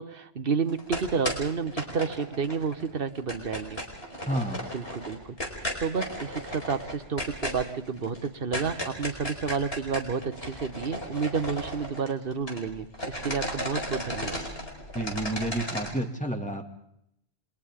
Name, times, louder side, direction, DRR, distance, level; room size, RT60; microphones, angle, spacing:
voice 1, 0.0-3.8 4.7-5.4 5.8-14.4, right 5 dB, 55° right, 10 dB, 1.3 m, -30 dB
sound 1, 0.7-2.8 3.1-12.7 12.9-15.9, equal, 60° left, 5.1 m, -35 dB
voice 2, 4.3-4.7 14.9-16.6, right 1 dB, 5° left, 2 dB, 2.3 m, -30 dB
29.0 x 26.0 x 3.7 m, 0.76 s
omnidirectional pair, 1.2 m